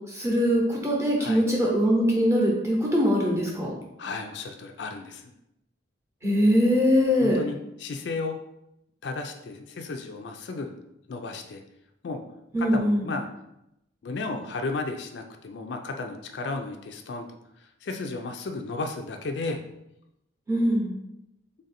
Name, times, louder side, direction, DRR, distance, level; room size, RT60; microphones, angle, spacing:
voice 1, 0.1-3.7 6.2-7.4 12.5-13.0 20.5-20.9, equal, 15° right, -3 dB, 0.7 m, -22 dB
voice 2, 4.0-5.2 7.2-8.4 9.0-10.7 11.1-11.6 12.0-12.2 12.6-13.3 14.0-17.3 17.6-19.6, left 3 dB, 60° left, 5 dB, 0.4 m, -34 dB
3.4 x 2.5 x 4.1 m, 0.84 s
head